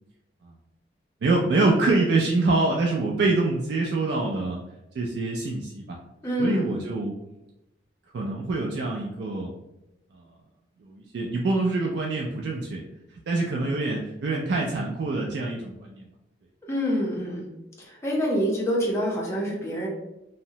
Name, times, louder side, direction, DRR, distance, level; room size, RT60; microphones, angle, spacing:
voice 1, 1.2-4.6 4.9-6.0 6.4-7.1 8.1-9.5 10.1-10.2 10.8-12.8 13.3-16.1, right 3 dB, 65° right, -1 dB, 0.3 m, -25 dB
voice 2, 6.2-6.8 16.7-17.4 17.8-19.9, equal, 15° left, -3 dB, 0.6 m, -26 dB
2.7 x 2.0 x 2.7 m, 0.92 s
head